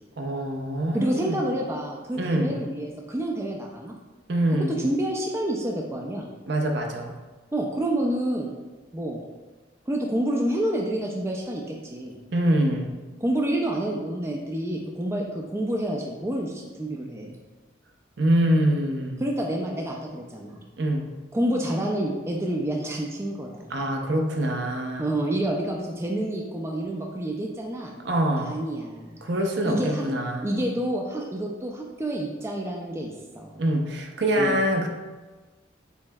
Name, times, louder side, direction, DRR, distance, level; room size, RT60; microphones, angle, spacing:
voice 1, 0.2-1.4 2.1-2.5 4.3-4.8 6.5-7.2 12.3-12.9 18.2-19.2 20.8-21.1 23.7-25.1 28.0-28.6 29.2-30.5 33.6-34.9, right 1 dB, 65° right, 2 dB, 0.6 m, -24 dB
voice 2, 0.9-3.9 4.7-6.3 7.5-8.6 8.9-9.2 9.9-12.1 13.2-17.3 19.2-20.6 21.3-23.7 25.0-27.9 28.4-29.2 29.7-30.0 30.4-33.5 34.4-34.6, right 1 dB, 15° right, -1 dB, 0.3 m, -28 dB
6.9 x 3.1 x 2.2 m, 1.2 s
head